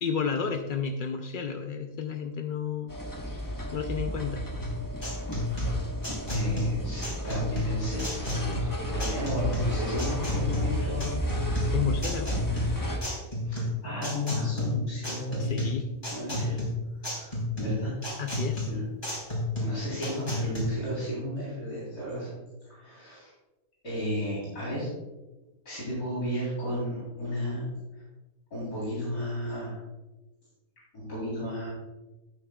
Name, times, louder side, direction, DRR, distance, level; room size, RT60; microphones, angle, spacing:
voice 1, 0.0-2.9 3.7-4.4 11.7-12.4 15.4-15.9 18.2-18.7, left 6 dB, 65° left, 5 dB, 0.5 m, -31 dB
sound 1, 2.9-13.0, equal, 15° left, 1.0 m, -32 dB
sound 2, 4.6-20.6, left 2 dB, 35° left, 3.8 m, -31 dB
voice 2, 6.3-11.2 13.5-16.6 17.0-17.9 18.7-18.8 19.6-22.4 22.7-23.3 23.8-24.9 25.7-27.6 27.9-28.0 28.5-29.8 30.9-31.7, equal, 90° left, -8 dB, 4.0 m, -34 dB
13.0 x 8.8 x 2.3 m, 1.1 s
omnidirectional pair, 1.5 m